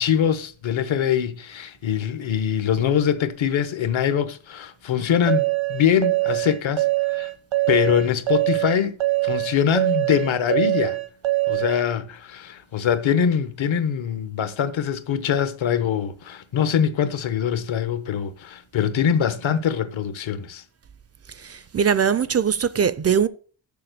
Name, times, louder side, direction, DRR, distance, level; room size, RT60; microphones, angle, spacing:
voice 1, 0.0-7.3 7.7-9.0 9.2-11.0 11.5-20.6, left 8 dB, 70° left, 1.1 m, -23 dB
sound 1, 5.3-11.8, right 19 dB, 90° right, 1.2 m, -23 dB
voice 2, 21.3-23.3, right 7 dB, 35° right, 0.4 m, -21 dB
6.9 x 6.9 x 6.6 m
wide cardioid pair, 150°, 48 cm